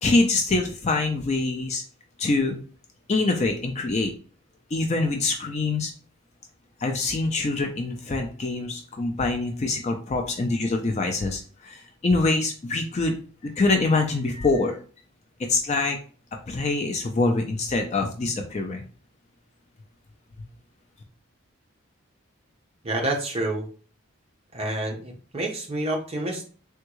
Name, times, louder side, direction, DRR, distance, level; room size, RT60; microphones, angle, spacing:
voice 1, 0.0-1.8 2.2-2.6 3.1-4.1 4.7-5.9 6.8-14.8 15.5-16.0 16.5-18.8, left 3 dB, 30° left, 4 dB, 0.3 m, -25 dB
voice 2, 22.8-23.7 24.5-26.5, right 1 dB, 25° right, 0 dB, 0.7 m, -28 dB
3.5 x 2.2 x 3.0 m, 0.40 s
head